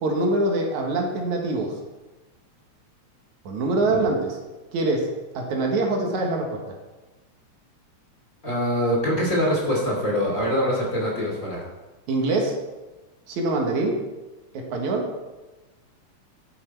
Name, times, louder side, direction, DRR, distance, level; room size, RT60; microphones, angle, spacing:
voice 1, 0.0-1.7 3.4-4.4 4.7-5.1 5.3-6.8 12.1-12.6 13.3-14.0 14.5-15.1, right 2 dB, 75° right, 1 dB, 2.9 m, -24 dB
voice 2, 8.4-11.6, equal, 25° left, -3 dB, 3.0 m, -24 dB
11.5 x 8.8 x 4.6 m, 1.1 s
omnidirectional pair, 3.3 m